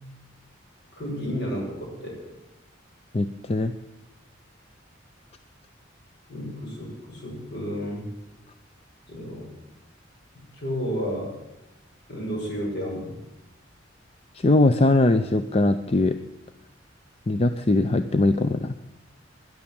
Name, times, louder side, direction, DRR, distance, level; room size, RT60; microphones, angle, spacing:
voice 1, 0.9-2.2 6.3-8.1 9.1-9.5 10.5-11.4 12.1-13.1, equal, 60° left, -2 dB, 6.4 m, -32 dB
voice 2, 3.1-3.7 14.3-16.2 17.3-18.7, left 2 dB, 30° left, 10 dB, 0.5 m, -21 dB
13.0 x 11.0 x 8.8 m, 0.91 s
head